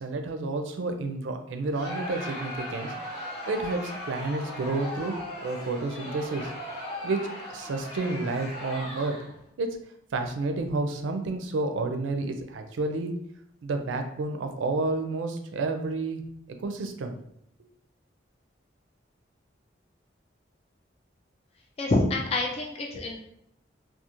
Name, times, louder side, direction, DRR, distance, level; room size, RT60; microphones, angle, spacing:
voice 1, 0.0-2.9 3.5-5.2 5.4-6.5 7.0-9.2 9.6-9.8 10.1-13.1 13.6-16.2 16.6-17.1, right 3 dB, 85° right, 6 dB, 0.4 m, -30 dB
Crowd, 1.7-9.4, left 1 dB, 85° left, 1.2 m, -38 dB
voice 2, 21.8-23.2, left 2 dB, 35° left, 1 dB, 0.3 m, -27 dB
2.4 x 2.3 x 2.9 m, 0.74 s
head